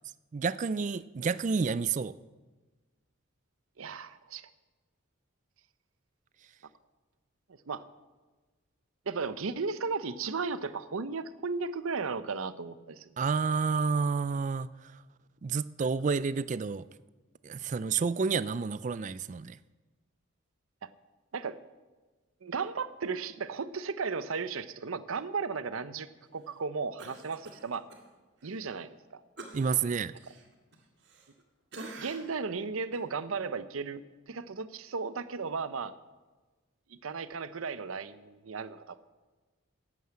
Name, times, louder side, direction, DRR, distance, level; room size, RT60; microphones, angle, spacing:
voice 1, 0.3-2.1 13.2-14.7 15.4-16.9 17.4-19.6 29.5-30.1, right 5 dB, 35° right, 17 dB, 0.3 m, -29 dB
voice 2, 3.8-4.5 7.7-7.8 9.1-13.1 20.8-20.9 21.3-21.6 22.4-27.9 28.4-29.2 32.0-35.9 36.9-39.1, right 4 dB, 80° right, 14 dB, 0.7 m, -35 dB
Cough, 27.0-28.0 28.4-28.6 29.4-31.4 31.7-32.4 32.9-33.1, right 2 dB, 55° right, 1.8 m, -47 dB
11.5 x 9.3 x 7.6 m, 1.3 s
head